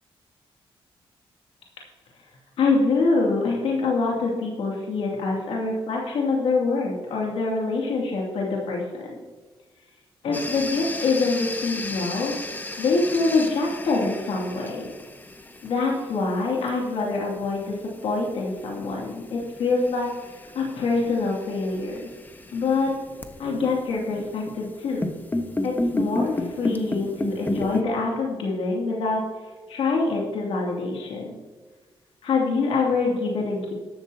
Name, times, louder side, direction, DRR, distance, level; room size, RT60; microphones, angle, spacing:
voice 1, 2.6-9.2 10.2-12.3 12.8-14.9 15.6-17.8 18.0-20.1 20.5-22.1 22.5-22.9 23.4-25.1 25.6-29.2 29.7-31.4 32.2-33.7, left 3 dB, 85° left, -2 dB, 2.6 m, -25 dB
sound 1, 10.3-27.8, left 2 dB, 20° left, 1.2 m, -33 dB
13.5 x 12.0 x 2.8 m, 1.4 s
cardioid pair, 100°, 10 cm